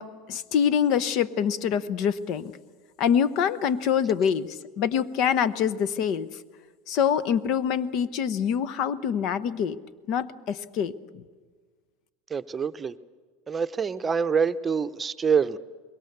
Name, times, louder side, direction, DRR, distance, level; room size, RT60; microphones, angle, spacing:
voice 1, 0.0-2.5 3.0-6.3 6.9-9.8 10.1-11.2, left 8 dB, 55° left, 16 dB, 0.9 m, -25 dB
voice 2, 12.3-12.9 13.5-15.6, right 6 dB, 25° right, 12 dB, 0.8 m, -25 dB
24.5 x 22.0 x 6.8 m, 1.5 s
hypercardioid pair, 85°, 0 cm